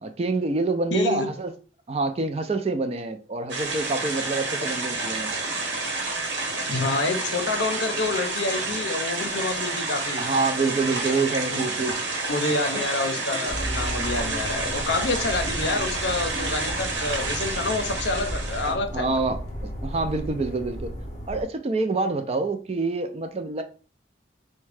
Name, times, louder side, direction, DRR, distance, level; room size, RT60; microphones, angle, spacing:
voice 1, 0.0-1.5 1.9-5.3 10.2-12.0 12.7-12.8 16.3-16.5 18.6-19.4 19.8-21.0 21.3-23.6, right 3 dB, 35° right, 0.4 m, -27 dB
voice 2, 0.9-1.3 6.7-10.2 11.5-11.9 12.3-19.1, left 3 dB, 75° left, 0.6 m, -28 dB
sound 1, 3.5-18.7, right 3 dB, 85° right, 1.0 m, -29 dB
sound 2, 13.5-21.4, equal, 40° left, 0.7 m, -34 dB
3.5 x 2.2 x 3.3 m
head